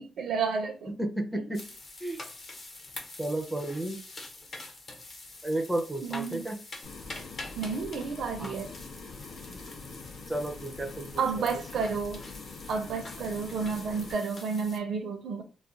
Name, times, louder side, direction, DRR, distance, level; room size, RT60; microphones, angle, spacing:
voice 1, 0.0-0.9 6.0-6.4 7.6-8.7 11.2-12.2 12.7-15.4, right 5 dB, 70° right, 0.6 m, -31 dB
voice 2, 0.9-1.6 2.0-2.2 3.2-4.0 5.4-6.6 8.4-8.5 9.5-9.6 10.3-11.5, right 1 dB, 5° right, 0.5 m, -32 dB
sound 1, 1.5-14.8, left 2 dB, 45° left, 0.8 m, -46 dB
sound 2, 6.8-14.1, left 4 dB, 80° left, 0.5 m, -45 dB
2.4 x 2.2 x 3.8 m
wide cardioid pair, 165°, 0 cm